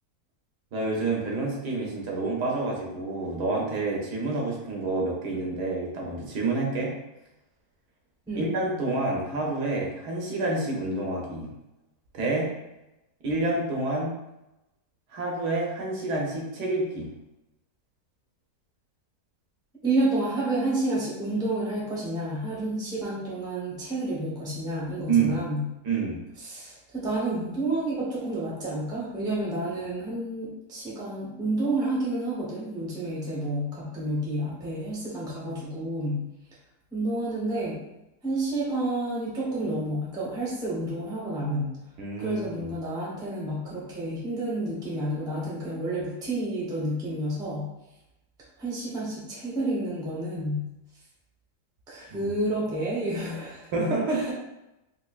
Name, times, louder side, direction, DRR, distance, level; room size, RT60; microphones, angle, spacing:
voice 1, 0.7-6.9 8.3-11.5 12.1-12.5 13.2-14.1 15.1-17.1 25.1-25.4 25.8-26.2 42.0-42.4 52.1-52.3 53.7-54.3, right 3 dB, 80° right, -2 dB, 1.4 m, -28 dB
voice 2, 19.8-25.6 26.4-36.2 36.9-37.8 38.2-41.7 42.2-47.7 48.6-50.6 51.9-54.3, right 1 dB, 5° right, -6 dB, 0.7 m, -30 dB
4.2 x 2.5 x 2.4 m, 0.94 s
omnidirectional pair, 1.7 m